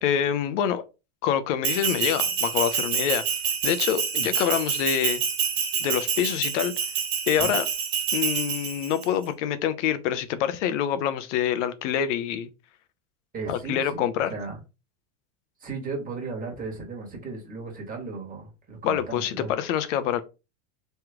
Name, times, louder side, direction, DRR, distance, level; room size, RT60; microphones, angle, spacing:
voice 1, 0.0-0.8 1.2-3.2 3.6-5.2 5.8-6.7 7.3-7.6 8.1-12.5 13.5-14.3 18.8-20.2, left 9 dB, 75° left, 0.7 m, -26 dB
Bell, 1.6-9.1, right 7 dB, 50° right, 1.6 m, -27 dB
voice 2, 13.3-14.6 15.6-19.5, right 4 dB, 25° right, 1.5 m, -36 dB
3.2 x 3.0 x 3.5 m
supercardioid pair, 130°, 36 cm